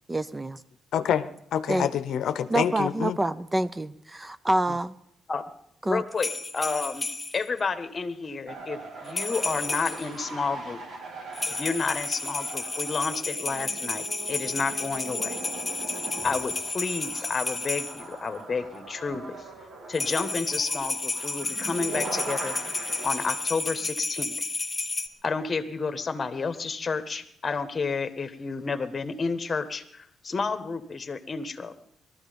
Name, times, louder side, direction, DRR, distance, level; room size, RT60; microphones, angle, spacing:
voice 1, 0.1-0.6 1.7-1.9 2.5-4.9 5.9-6.0, right 1 dB, 15° right, 0.5 m, -27 dB
voice 2, 0.9-3.2, left 9 dB, 75° left, 0.7 m, -27 dB
voice 3, 5.9-7.1 7.3-10.8 11.5-15.4 16.2-19.4 19.9-22.6 23.0-24.4 25.2-31.7, left 4 dB, 35° left, 1.4 m, -30 dB
sound 1, 6.2-7.5 9.1-10.2 11.3-18.0 19.9-25.1, left 3 dB, 20° left, 1.4 m, -32 dB
sound 2, 8.5-23.9, right 3 dB, 60° right, 3.0 m, -41 dB
19.5 x 13.0 x 5.3 m
cardioid pair, 90°, 0 cm